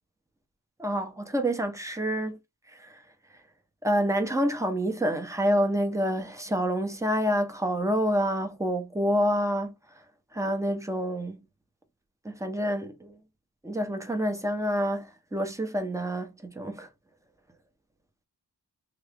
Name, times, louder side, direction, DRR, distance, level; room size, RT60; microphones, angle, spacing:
voice 1, 0.8-2.4 2.8-3.0 3.8-9.7 10.3-11.4 12.2-13.2 13.6-16.9, equal, 5° right, 1.0 m, -27 dB
3.5 x 2.7 x 3.4 m
wide cardioid pair, 50°, 41 cm